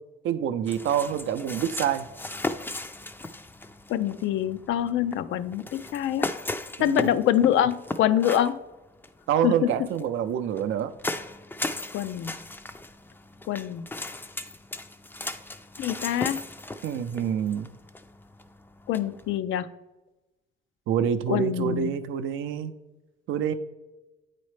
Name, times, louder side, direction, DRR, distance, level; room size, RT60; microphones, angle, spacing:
voice 1, 0.2-2.0 6.8-7.1 9.3-10.9 16.8-17.7 20.9-22.7 23.3-23.5, right 9 dB, 75° right, 11 dB, 0.5 m, -27 dB
sound 1, 0.7-19.4, left 2 dB, 10° left, 0.4 m, -37 dB
voice 2, 3.9-6.3 6.8-8.6 9.4-9.7 11.9-12.3 13.5-13.9 15.8-16.4 18.9-19.7 21.3-21.9, left 11 dB, 80° left, 13 dB, 0.4 m, -25 dB
8.6 x 4.2 x 3.2 m, 1.1 s
cardioid pair, 90°, 20 cm